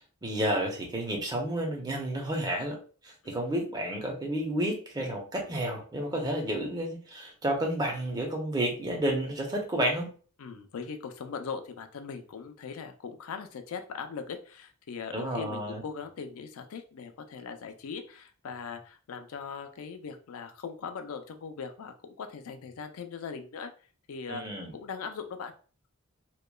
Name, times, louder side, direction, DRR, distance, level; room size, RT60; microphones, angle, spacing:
voice 1, 0.0-2.8 3.0-10.1 15.1-15.8 24.3-24.7, right 1 dB, 20° right, 1 dB, 0.6 m, -31 dB
voice 2, 10.4-23.7 24.1-24.4 24.8-25.5, left 5 dB, 70° left, 7 dB, 0.4 m, -40 dB
2.9 x 2.2 x 2.2 m, 0.39 s
head